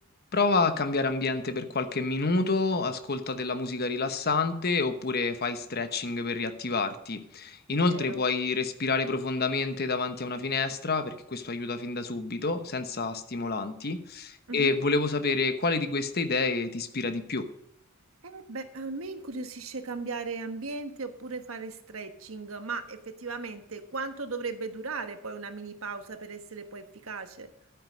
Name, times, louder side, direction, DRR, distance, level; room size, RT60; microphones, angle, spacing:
voice 1, 0.3-17.5, left 3 dB, 50° left, 9 dB, 1.1 m, -28 dB
voice 2, 7.7-8.2 14.5-14.8 18.2-27.5, right 3 dB, 80° right, 7 dB, 1.3 m, -37 dB
12.0 x 9.2 x 5.2 m, 0.77 s
head